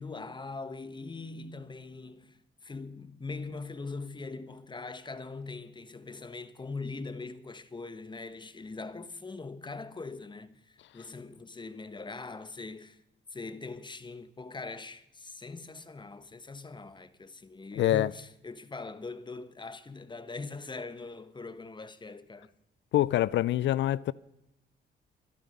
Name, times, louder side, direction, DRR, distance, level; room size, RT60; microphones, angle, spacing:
voice 1, 0.0-13.0 13.3-22.5, left 3 dB, 25° left, 1.3 m, -41 dB
voice 2, 17.7-18.1 22.9-24.1, left 13 dB, 70° left, 0.5 m, -25 dB
24.0 x 11.0 x 5.4 m
cardioid pair, 90°, 20 cm